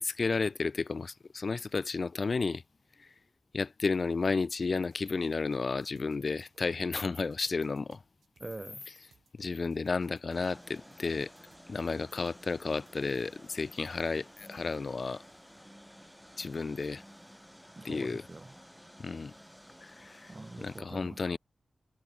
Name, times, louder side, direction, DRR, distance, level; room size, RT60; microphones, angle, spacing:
voice 1, 0.0-2.6 3.0-3.1 3.5-8.0 9.4-11.3 11.7-15.2 16.4-17.0 17.8-18.2 19.0-19.3 19.8-20.3 20.6-21.4, left 4 dB, 55° left, 0.4 m, -32 dB
sound 1, 4.6-14.1, right 6 dB, 90° right, 7.1 m, -65 dB
voice 2, 8.4-8.8 17.8-18.5 20.3-21.4, right 2 dB, 30° right, 1.0 m, -44 dB
sound 2, 10.3-20.8, equal, ahead, 0.9 m, -54 dB
cardioid pair, 65°, 0 cm